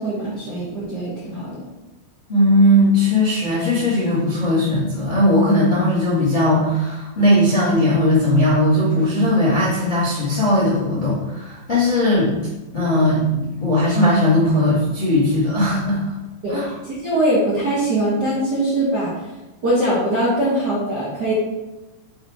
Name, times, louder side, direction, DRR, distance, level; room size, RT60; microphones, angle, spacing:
voice 1, 0.0-1.7 16.4-19.3 19.6-21.3, right 1 dB, 85° right, -8 dB, 0.9 m, -22 dB
voice 2, 2.3-12.3 12.7-16.1 16.5-16.7, left 1 dB, 25° left, -8 dB, 0.9 m, -18 dB
7.0 x 2.8 x 4.8 m, 1.0 s
omnidirectional pair, 4.2 m